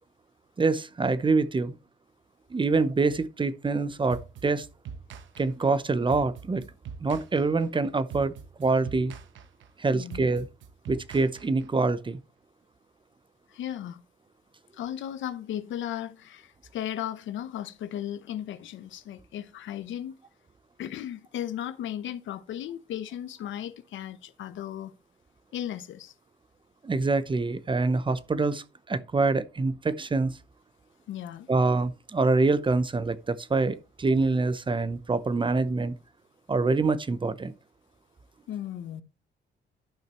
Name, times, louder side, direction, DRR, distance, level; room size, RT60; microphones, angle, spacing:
voice 1, 0.6-1.7 2.5-4.6 5.4-6.6 7.0-8.3 8.6-9.1 9.8-10.5 10.9-12.2 26.8-30.4 31.5-35.9 36.5-37.5, right 3 dB, 25° right, 0.8 m, -25 dB
sound 1, 4.1-11.9, right 6 dB, 75° right, 1.1 m, -43 dB
voice 2, 9.9-10.3 13.5-14.0 14.8-20.2 20.8-24.9 25.5-26.1 31.1-31.5 38.5-39.0, left 11 dB, 75° left, 0.9 m, -36 dB
12.0 x 5.6 x 3.1 m
cardioid pair, 90°, 20 cm